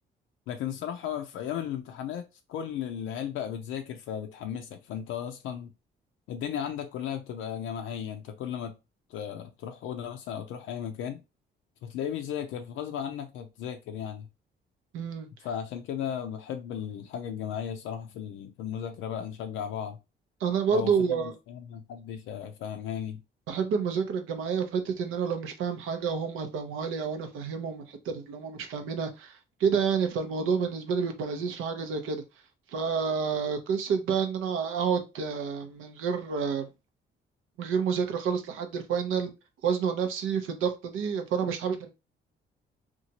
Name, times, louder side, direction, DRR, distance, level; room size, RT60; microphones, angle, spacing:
voice 1, 0.5-5.7 6.3-8.7 9.1-11.2 11.8-14.3 15.4-20.0 20.7-23.2, left 9 dB, 85° left, 0.4 m, -35 dB
voice 2, 14.9-15.3 20.4-21.3 23.5-32.2 32.7-36.7 37.6-39.3 39.6-41.9, right 6 dB, 90° right, 0.6 m, -29 dB
2.9 x 2.3 x 2.7 m
cardioid pair, 90°, 20 cm